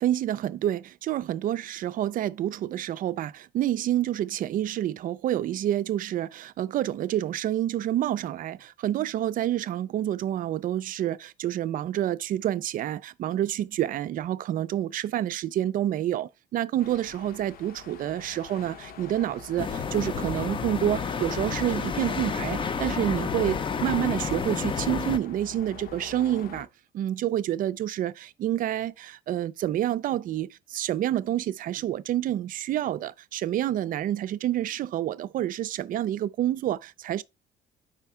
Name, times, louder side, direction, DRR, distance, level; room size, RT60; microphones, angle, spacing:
voice 1, 0.0-26.7 26.9-37.2, right 12 dB, 55° right, 0.4 m, -28 dB
sound 1, 16.8-26.7, left 6 dB, 60° left, 0.8 m, -45 dB
sound 2, 19.6-25.2, left 5 dB, 30° left, 0.5 m, -30 dB
5.0 x 3.4 x 5.6 m
cardioid pair, 110°, 17 cm